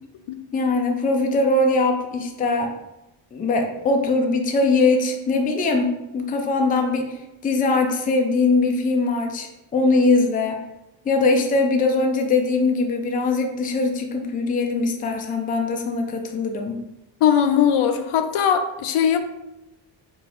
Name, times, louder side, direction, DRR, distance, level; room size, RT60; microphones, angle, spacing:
voice 1, 0.5-2.7 3.3-10.6 11.1-16.8, left 3 dB, 20° left, 4 dB, 0.3 m, -21 dB
voice 2, 17.2-19.2, left 8 dB, 80° left, 8 dB, 0.6 m, -19 dB
4.5 x 2.4 x 4.2 m, 0.94 s
wide cardioid pair, 160°, 50 cm